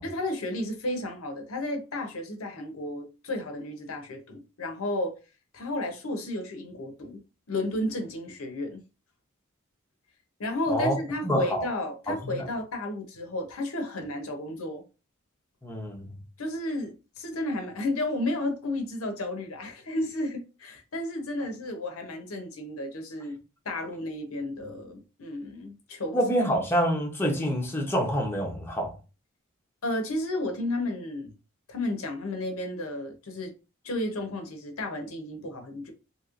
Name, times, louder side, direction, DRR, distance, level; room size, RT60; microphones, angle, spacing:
voice 1, 0.0-5.2 5.5-7.2 7.5-8.8 10.4-14.8 16.4-23.4 23.6-26.2 29.8-31.3 31.7-33.5 33.8-35.9, left 1 dB, 70° left, 0.7 m, -32 dB
voice 2, 11.2-11.7 12.1-12.5 15.6-16.2 26.1-29.0, equal, 10° left, 0.6 m, -27 dB
3.0 x 2.9 x 2.5 m
head